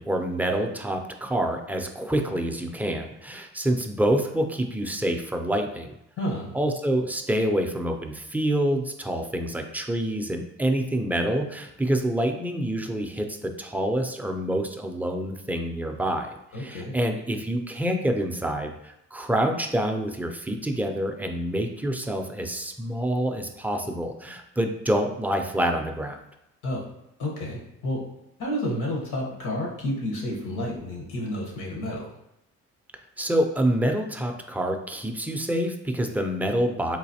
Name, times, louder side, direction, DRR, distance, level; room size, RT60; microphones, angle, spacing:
voice 1, 0.0-6.0 6.5-26.2 33.2-37.0, right 1 dB, 5° right, 4 dB, 0.4 m, -27 dB
voice 2, 6.2-6.5 16.5-16.9 26.6-26.8 27.2-28.0 28.4-32.0, left 1 dB, 80° left, -2 dB, 1.1 m, -30 dB
4.0 x 2.5 x 2.7 m, 0.85 s
cardioid pair, 90°, 30 cm